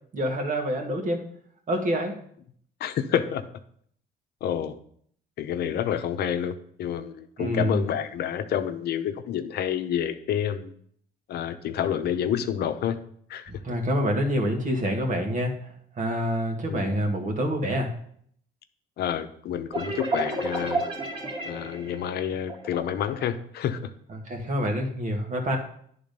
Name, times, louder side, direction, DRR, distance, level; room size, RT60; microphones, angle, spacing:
voice 1, 0.1-1.2 1.7-2.1 7.4-7.8 13.6-15.5 16.0-17.9 24.3-25.6, equal, 45° right, 3 dB, 1.9 m, -26 dB
voice 2, 2.8-3.5 4.4-4.8 5.4-10.7 11.3-13.0 13.3-13.5 16.6-16.9 19.0-20.9 21.4-23.9, left 9 dB, 65° left, 9 dB, 0.8 m, -28 dB
sound 1, 19.7-23.2, right 2 dB, 30° right, 2.0 m, -31 dB
10.5 x 3.8 x 5.3 m, 0.63 s
cardioid pair, 90°, 18 cm